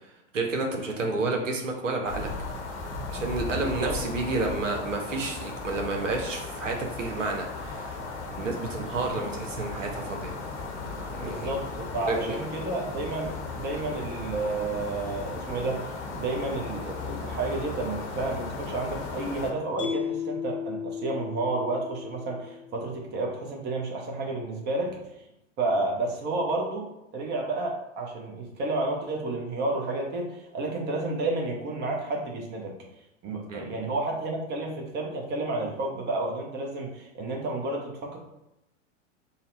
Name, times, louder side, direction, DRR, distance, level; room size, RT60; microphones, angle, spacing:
voice 1, 0.0-2.3 3.1-8.0 8.4-10.3 11.0-11.5 12.1-12.4 33.5-33.7, right 3 dB, 75° right, 2 dB, 0.8 m, -30 dB
sound 1, 2.1-19.5, left 3 dB, 60° left, 1.0 m, -36 dB
voice 2, 3.5-4.0 11.2-25.0 25.6-32.7 33.2-38.2, right 2 dB, 25° right, 1 dB, 0.8 m, -31 dB
Mallet percussion, 19.8-23.1, left 7 dB, 10° left, 0.6 m, -35 dB
4.1 x 2.2 x 3.9 m, 0.90 s
figure-of-eight pair, 95°, 38 cm